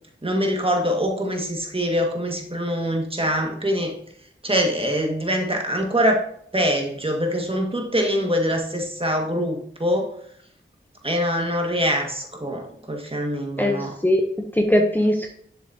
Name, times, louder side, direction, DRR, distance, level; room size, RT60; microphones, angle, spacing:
voice 1, 0.2-4.0 4.4-6.2 6.5-10.1 11.0-13.9, equal, 25° right, 2 dB, 1.9 m, -24 dB
voice 2, 13.6-15.3, left 1 dB, 10° left, 2 dB, 0.8 m, -21 dB
7.2 x 7.1 x 2.8 m, 0.66 s
cardioid pair, 45°, 21 cm